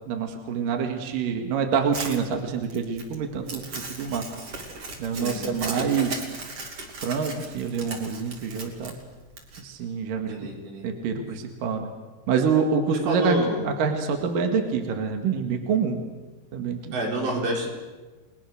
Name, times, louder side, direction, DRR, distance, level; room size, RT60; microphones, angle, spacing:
voice 1, 0.1-4.2 5.0-6.2 7.0-8.9 9.6-10.5 10.8-11.9 12.3-16.0 16.5-17.0, right 5 dB, 60° right, 4 dB, 3.1 m, -26 dB
Crumpling crinkling, 1.9-9.6, right 3 dB, 35° right, 3.4 m, -37 dB
voice 2, 10.3-10.9 13.1-13.7 16.9-17.7, right 1 dB, 75° right, -1 dB, 7.0 m, -28 dB
30.0 x 21.0 x 6.6 m, 1.2 s
omnidirectional pair, 5.1 m